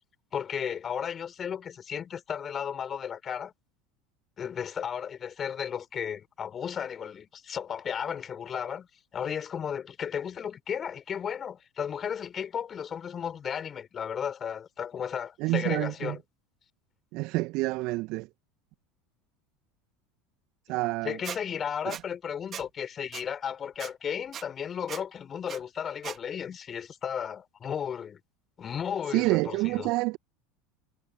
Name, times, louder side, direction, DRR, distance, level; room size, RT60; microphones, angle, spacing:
voice 1, 0.3-3.5 4.4-8.9 9.1-16.2 21.0-28.2 28.6-29.9, left 8 dB, 30° left, 5.2 m, -34 dB
voice 2, 15.4-16.2 17.1-18.3 20.7-21.2 21.9-22.0 29.1-30.2, right 22 dB, 55° right, 1.7 m, -28 dB
Squeak, 21.2-21.4 21.9-22.0 22.5-22.7 23.1-23.2 23.8-23.9 24.3-24.4 24.9-25.0 25.5-25.6 26.0-26.2, right 9 dB, 35° right, 2.4 m, -38 dB
figure-of-eight pair, 75°, 0 cm